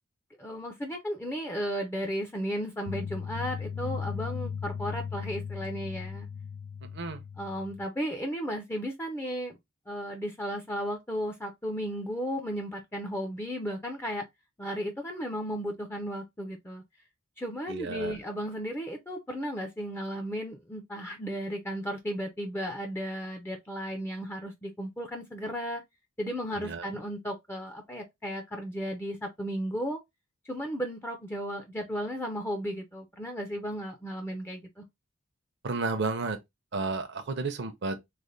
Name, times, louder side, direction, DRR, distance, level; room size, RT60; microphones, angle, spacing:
voice 1, 0.4-6.3 7.4-9.6 9.9-14.2 14.6-16.8 17.4-25.8 26.2-30.0 30.5-34.8, equal, 10° left, 0.5 m, -34 dB
sound 1, 2.9-7.8, left 6 dB, 75° left, 0.4 m, -37 dB
voice 2, 6.8-7.2 17.7-18.2 26.5-26.9 35.6-36.4 36.7-38.0, right 3 dB, 55° right, 0.6 m, -32 dB
3.2 x 2.1 x 3.8 m
head